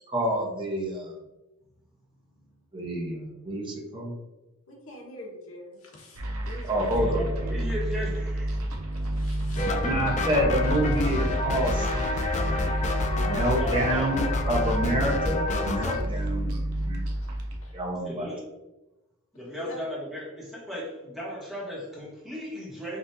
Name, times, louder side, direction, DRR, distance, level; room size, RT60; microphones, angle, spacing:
voice 1, 0.1-1.1 2.7-4.2 6.7-7.2 9.8-12.5 13.2-17.0 17.7-18.3, right 1 dB, 25° right, -1 dB, 0.8 m, -28 dB
voice 2, 4.7-6.8 8.6-8.7 9.0-10.1 12.5-13.9 16.7-17.8 19.4-19.8, right 1 dB, 70° left, -3 dB, 1.3 m, -41 dB
sound 1, 6.2-17.6, right 1 dB, 75° right, 0.7 m, -30 dB
voice 3, 6.8-8.6 13.6-14.3 18.0-18.4 19.3-23.0, equal, ahead, -7 dB, 1.3 m, -36 dB
sound 2, 9.6-16.0, left 3 dB, 35° left, 0.4 m, -29 dB
5.3 x 2.6 x 2.6 m, 1.0 s
head